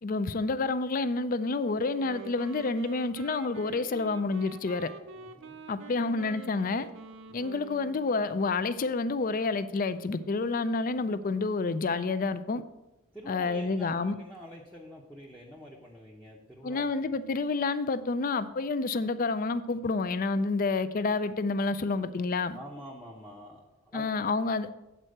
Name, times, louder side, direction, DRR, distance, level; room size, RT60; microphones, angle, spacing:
voice 1, 0.0-4.9 5.7-6.9 7.3-12.6 13.3-14.2 16.6-22.6 23.9-24.8, left 3 dB, 40° left, 0.4 m, -29 dB
Wind instrument woodwind instrument, 1.8-8.4, right 4 dB, 55° right, 0.5 m, -46 dB
voice 2, 5.1-5.6 7.3-7.6 13.1-16.9 22.5-24.1, equal, 5° left, 0.7 m, -47 dB
8.1 x 4.4 x 6.3 m
head